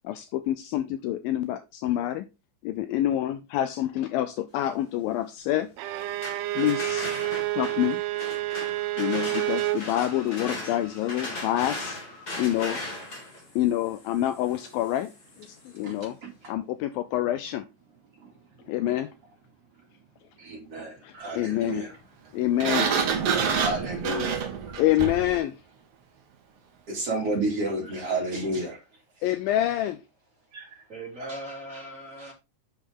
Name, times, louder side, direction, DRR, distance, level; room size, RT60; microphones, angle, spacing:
voice 1, 0.0-2.3 2.6-5.7 6.6-7.1 7.5-8.0 9.0-12.0 12.4-12.8 13.6-15.1 15.4-16.2 16.5-17.6 18.7-19.1 21.0-21.9 22.3-22.9 24.8-25.6 29.2-30.0, left 13 dB, 90° left, 2.0 m, -27 dB
Bowed string instrument, 5.8-9.9, right 17 dB, 85° right, 2.6 m, -29 dB
sound 1, 5.9-15.8, left 2 dB, 30° left, 1.9 m, -38 dB
voice 2, 20.4-21.9 23.3-24.8 26.9-28.8 30.5-30.7 31.2-31.3, right 2 dB, 40° right, 3.0 m, -31 dB
Sliding door, 22.6-25.4, right 6 dB, 65° right, 1.5 m, -27 dB
voice 3, 30.9-32.3, right 1 dB, 20° right, 3.1 m, -39 dB
8.4 x 6.3 x 3.6 m
omnidirectional pair, 4.7 m